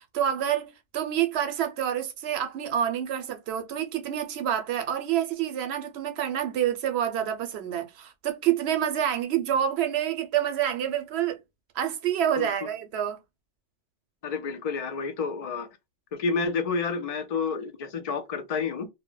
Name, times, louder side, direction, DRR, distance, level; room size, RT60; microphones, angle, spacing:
voice 1, 0.0-11.4 11.7-13.2, right 10 dB, 75° right, 0.8 m, -27 dB
voice 2, 14.2-15.7 16.1-18.9, left 5 dB, 50° left, 0.4 m, -29 dB
2.1 x 2.1 x 3.6 m
omnidirectional pair, 1.1 m